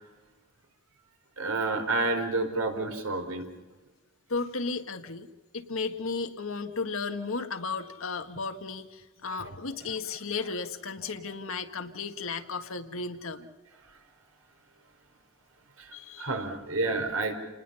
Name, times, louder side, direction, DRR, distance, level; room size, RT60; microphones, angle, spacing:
voice 1, 1.4-3.5 9.2-9.6 15.8-17.3, right 3 dB, 80° right, 4 dB, 4.6 m, -30 dB
voice 2, 4.3-5.3 5.5-13.5 15.9-16.3, left 4 dB, 70° left, 7 dB, 1.7 m, -34 dB
29.0 x 20.0 x 5.7 m, 1.2 s
head